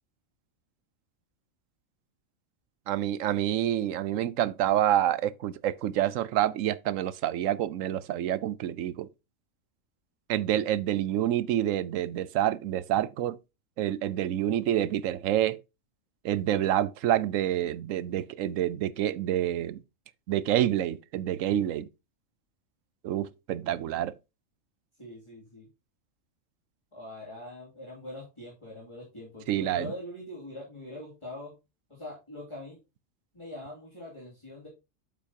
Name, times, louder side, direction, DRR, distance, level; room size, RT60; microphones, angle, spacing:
voice 1, 2.9-9.1 10.3-13.4 13.8-15.6 16.2-19.8 20.3-21.9 23.0-24.2 29.5-29.9, right 12 dB, 80° right, 1.0 m, -27 dB
voice 2, 25.0-25.7 26.9-31.5 31.9-32.8 33.3-34.7, left 1 dB, 20° left, 2.7 m, -43 dB
8.5 x 7.3 x 2.8 m
omnidirectional pair, 1.4 m